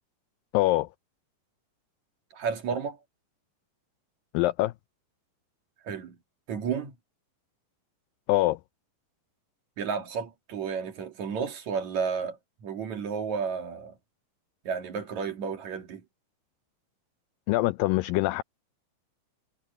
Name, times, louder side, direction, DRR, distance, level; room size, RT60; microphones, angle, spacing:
voice 1, 0.5-0.9 4.3-4.7 8.3-8.6 17.5-18.4, left 18 dB, 90° left, 2.0 m, -24 dB
voice 2, 2.3-3.0 5.8-6.2 6.5-6.9 9.8-13.9 14.6-16.0, right 6 dB, 50° right, 3.0 m, -32 dB
omnidirectional pair, 4.6 m